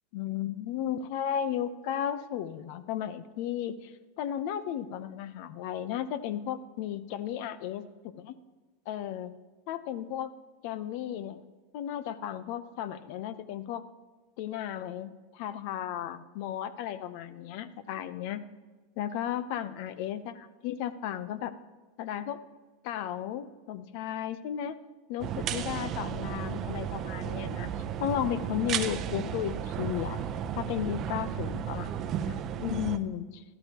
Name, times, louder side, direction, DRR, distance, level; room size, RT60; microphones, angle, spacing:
voice 1, 0.1-8.3 8.9-9.3 9.7-10.3 10.6-11.4 11.7-13.8 14.4-18.4 19.0-21.5 22.0-22.4 22.8-24.8 25.1-27.7 28.0-30.2 30.6-33.4, left 10 dB, 60° left, 14 dB, 0.7 m, -34 dB
sound 1, 25.2-33.0, right 9 dB, 40° right, 0.6 m, -34 dB
13.0 x 12.5 x 3.0 m, 1.3 s
hypercardioid pair, 105°, 0 cm